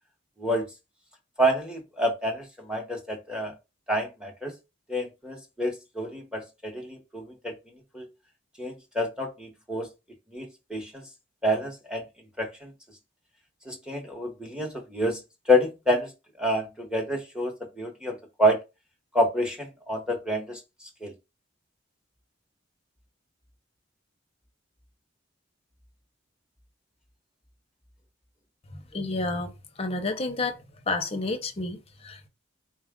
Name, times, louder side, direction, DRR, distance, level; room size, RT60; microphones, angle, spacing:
voice 1, 1.4-3.6 3.9-4.5 4.9-8.1 8.6-9.9 10.3-11.0 11.4-12.0 12.4-12.7 13.6-15.2 15.5-16.1 16.4-18.6 19.1-21.1, equal, 5° right, 1.1 m, -28 dB
voice 2, 28.7-30.6 30.9-32.3, left 3 dB, 30° left, 0.7 m, -30 dB
4.3 x 2.4 x 3.6 m
head